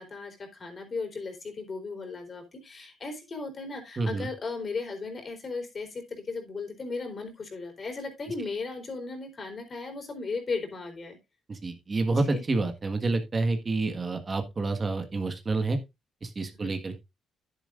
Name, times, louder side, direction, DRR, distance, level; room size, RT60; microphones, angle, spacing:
voice 1, 0.0-11.2 12.2-12.4 16.6-16.7, left 4 dB, 40° left, 4 dB, 4.1 m, -36 dB
voice 2, 4.0-4.3 11.5-15.8 16.2-17.0, right 3 dB, 35° right, 6 dB, 1.6 m, -28 dB
10.5 x 10.5 x 2.5 m, 0.23 s
cardioid pair, 90°, 0 cm